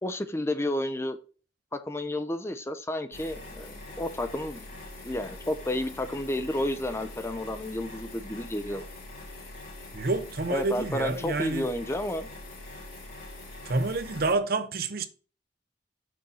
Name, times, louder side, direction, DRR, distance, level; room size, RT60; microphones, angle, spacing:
voice 1, 0.0-1.2 1.7-4.8 5.0-8.8 10.5-12.3, left 1 dB, 15° left, 0.5 m, -31 dB
sound 1, 3.1-14.3, left 2 dB, 50° left, 3.4 m, -43 dB
voice 2, 9.9-11.7 13.7-15.1, right 3 dB, 55° right, 0.7 m, -28 dB
6.3 x 4.2 x 5.4 m
head